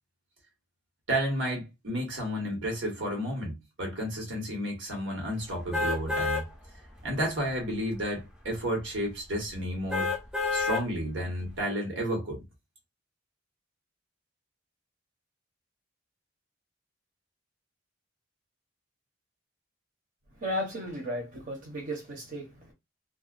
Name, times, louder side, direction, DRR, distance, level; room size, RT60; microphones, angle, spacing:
voice 1, 1.1-6.5 7.0-10.1 10.5-12.4, equal, 85° right, 1.2 m, -31 dB
sound 1, 5.7-6.4 7.0-7.1 9.9-10.8 11.4-11.5, left 3 dB, 5° right, 0.5 m, -28 dB
voice 2, 20.4-22.7, equal, 45° right, 0.7 m, -35 dB
2.3 x 2.2 x 2.4 m
head